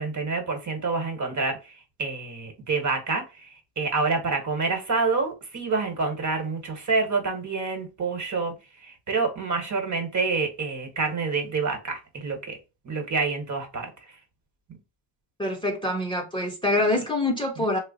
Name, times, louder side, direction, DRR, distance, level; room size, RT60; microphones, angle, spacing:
voice 1, 0.0-8.5 8.8-12.6 12.8-14.2 17.6-17.7, right 4 dB, 35° right, 1.1 m, -28 dB
voice 2, 15.4-17.8, left 2 dB, 10° left, 0.7 m, -25 dB
3.2 x 2.0 x 3.9 m
cardioid pair, 110°, 49 cm